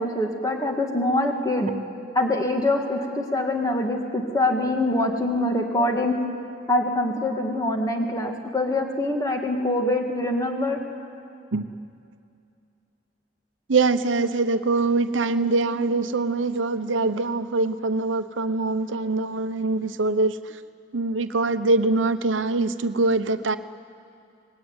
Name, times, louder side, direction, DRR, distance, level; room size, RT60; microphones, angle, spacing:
voice 1, 0.0-1.7 2.1-6.1 6.7-10.8, left 1 dB, 20° left, 2 dB, 2.0 m, -24 dB
voice 2, 13.7-20.6 20.9-23.6, right 3 dB, 90° right, 11 dB, 0.8 m, -23 dB
24.0 x 19.5 x 9.7 m, 2.5 s
head